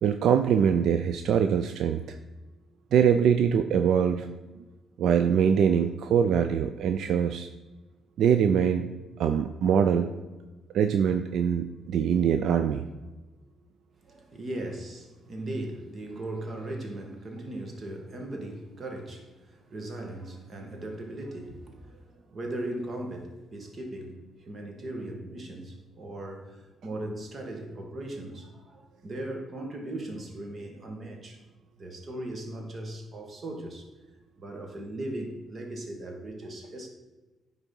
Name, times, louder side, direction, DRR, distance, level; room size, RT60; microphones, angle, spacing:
voice 1, 0.0-2.2 2.9-4.3 5.0-7.5 8.2-8.9 9.2-10.1 10.7-12.8, right 8 dB, 75° right, 0.4 m, -23 dB
voice 2, 14.0-31.4 31.8-33.9 34.4-36.9, right 1 dB, 45° right, 1.8 m, -38 dB
9.9 x 4.1 x 5.4 m
cardioid pair, 90°, 0 cm